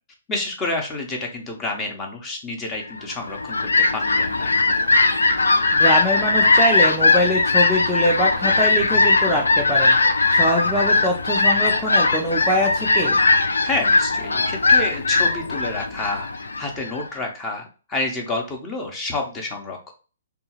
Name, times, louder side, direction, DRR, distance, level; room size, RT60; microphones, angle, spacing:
voice 1, 0.3-4.5 13.6-19.9, left 2 dB, 20° left, 1 dB, 0.9 m, -29 dB
Fowl, 3.1-17.1, left 3 dB, 75° left, 0.4 m, -19 dB
voice 2, 5.7-10.0 10.3-13.2, equal, ahead, -4 dB, 0.5 m, -23 dB
3.5 x 2.3 x 2.9 m, 0.36 s
figure-of-eight pair, 125°, 0 cm